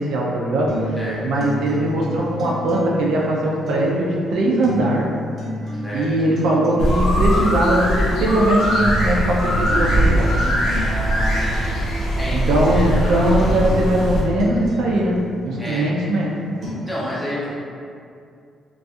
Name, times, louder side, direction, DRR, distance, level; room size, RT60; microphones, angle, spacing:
voice 1, 0.0-1.0 1.2-5.1 5.9-10.3 12.3-16.3, right 1 dB, 80° right, -3 dB, 0.4 m, -20 dB
sound 1, 0.7-16.7, equal, 50° right, 0.7 m, -32 dB
sound 2, 6.8-14.2, equal, 80° left, 0.6 m, -20 dB
voice 2, 10.8-11.7 12.2-12.8 15.6-15.9 16.7-17.6, equal, 5° left, -8 dB, 0.7 m, -29 dB
2.6 x 2.3 x 2.3 m, 2.4 s
cardioid pair, 90°, 0 cm